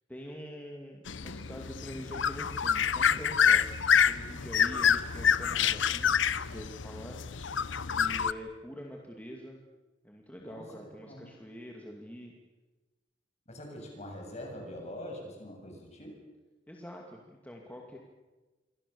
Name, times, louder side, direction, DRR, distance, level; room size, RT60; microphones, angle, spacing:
voice 1, 0.1-3.7 4.0-7.2 7.9-9.6 10.0-12.4 16.7-18.0, equal, 10° left, 0 dB, 2.4 m, -45 dB
sound 1, 1.1-8.3, left 7 dB, 85° left, 0.9 m, -27 dB
voice 2, 10.4-11.3 13.5-16.2, left 1 dB, 35° left, 2 dB, 7.3 m, -44 dB
28.5 x 24.0 x 7.1 m, 1.2 s
head